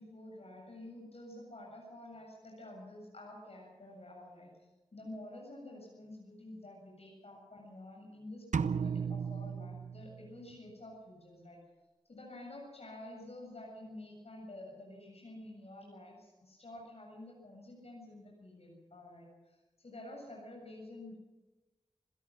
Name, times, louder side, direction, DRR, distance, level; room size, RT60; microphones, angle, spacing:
voice 1, 0.0-11.7 12.1-21.2, left 1 dB, 55° left, 0 dB, 7.5 m, -50 dB
sound 1, 8.5-10.5, right 6 dB, 85° right, 0.8 m, -35 dB
26.5 x 16.5 x 6.2 m, 1.1 s
cardioid pair, 55°, 12 cm